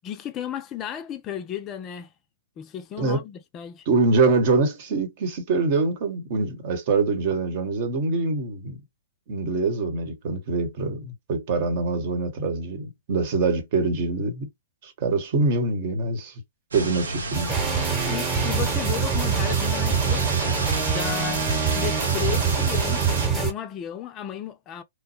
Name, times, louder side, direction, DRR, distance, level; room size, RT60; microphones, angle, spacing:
voice 1, 0.0-2.1 2.6-3.9 18.1-21.5 21.8-24.8, left 10 dB, 25° left, 0.4 m, -34 dB
voice 2, 3.9-8.8 9.3-14.5 14.8-16.3 16.7-17.5, right 3 dB, 45° right, 1.1 m, -24 dB
sound 1, 16.7-23.3, right 3 dB, 75° right, 0.8 m, -31 dB
sound 2, 17.3-23.5, right 6 dB, 20° right, 1.0 m, -24 dB
3.1 x 2.1 x 2.7 m
figure-of-eight pair, 115°, 0 cm